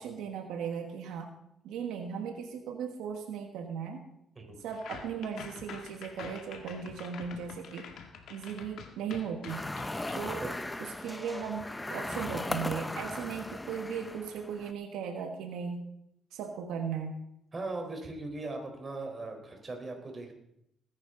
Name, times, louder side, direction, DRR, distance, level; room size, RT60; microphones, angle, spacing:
voice 1, 0.0-1.3 1.6-4.1 4.6-8.0 8.3-9.6 10.1-10.4 10.8-15.8 16.3-17.2, right 7 dB, 90° right, 5 dB, 1.4 m, -37 dB
sound 1, 4.7-10.1, left 6 dB, 75° left, 1.8 m, -47 dB
sound 2, 9.5-14.7, left 1 dB, 15° left, 0.8 m, -37 dB
voice 2, 17.5-20.3, right 2 dB, 30° right, 2 dB, 4.1 m, -39 dB
19.5 x 10.5 x 3.9 m, 0.78 s
cardioid pair, 90°, 0 cm